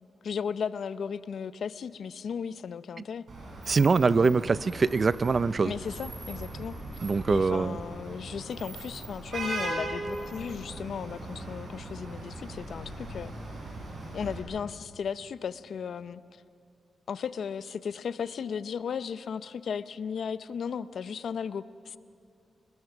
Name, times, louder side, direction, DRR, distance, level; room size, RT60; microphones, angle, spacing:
voice 1, 0.2-3.2 5.6-6.8 7.3-13.3 14.1-16.4 17.1-22.0, left 7 dB, 70° left, 14 dB, 0.6 m, -35 dB
Vehicle horn car horn honking / Traffic noise roadway noise, 3.3-14.4, right 2 dB, 60° right, 6.9 m, -39 dB
voice 2, 3.7-5.7 7.0-7.8, right 4 dB, 45° right, 17 dB, 0.5 m, -23 dB
29.0 x 20.0 x 6.1 m, 2.4 s
cardioid pair, 90°, 0 cm